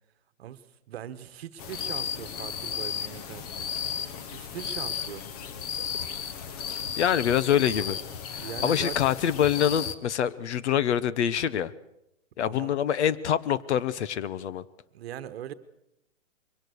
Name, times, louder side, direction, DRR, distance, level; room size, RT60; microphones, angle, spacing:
voice 1, 0.4-3.7 4.3-5.2 8.3-8.9 12.4-12.7 14.9-15.5, right 10 dB, 50° right, 12 dB, 1.3 m, -40 dB
sound 1, 1.6-10.0, left 8 dB, 30° left, 1.0 m, -34 dB
voice 2, 7.0-8.0 8.3-11.7 12.4-14.6, left 9 dB, 60° left, 17 dB, 1.0 m, -25 dB
22.5 x 18.0 x 6.5 m, 0.84 s
hypercardioid pair, 155°, 39 cm